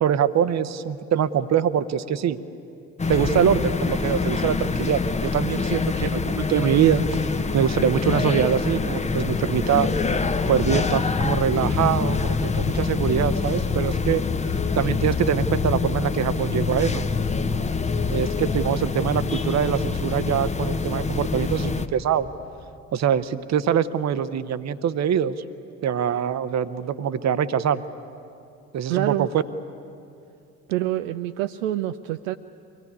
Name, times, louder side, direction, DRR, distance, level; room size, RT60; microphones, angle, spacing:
voice 1, 0.0-2.4 3.1-7.0 7.5-9.9 10.5-14.2 14.8-17.1 18.1-22.3 22.9-25.3 25.8-27.8 28.7-29.4, right 8 dB, 40° right, 14 dB, 0.9 m, -23 dB
sound 1, 3.0-21.9, left 4 dB, 15° left, 0.9 m, -25 dB
voice 2, 28.9-29.3 30.7-32.4, right 14 dB, 65° right, 9 dB, 0.6 m, -26 dB
24.0 x 17.5 x 9.6 m, 2.5 s
figure-of-eight pair, 45°, 43 cm